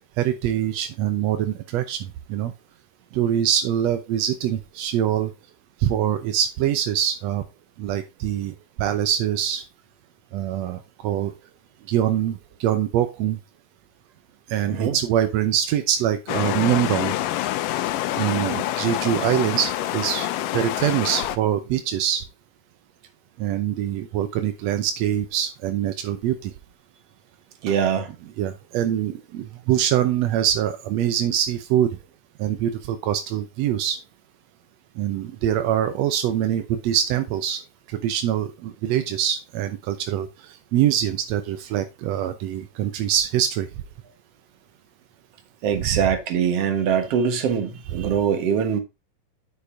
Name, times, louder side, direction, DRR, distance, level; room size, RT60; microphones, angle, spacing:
voice 1, 0.2-2.5 3.1-5.3 5.8-7.4 7.8-9.6 10.3-11.3 11.9-13.4 14.5-17.1 18.1-20.3 20.5-22.2 23.4-26.5 28.4-31.9 32.4-34.0 35.0-37.6 37.9-43.7 45.8-46.0, right 10 dB, 75° right, 1.5 m, -24 dB
sound 1, 16.3-21.4, left 14 dB, 85° left, 2.3 m, -26 dB
voice 2, 27.6-28.1 45.6-48.8, right 7 dB, 55° right, 2.1 m, -23 dB
9.5 x 6.8 x 2.7 m
omnidirectional pair, 3.9 m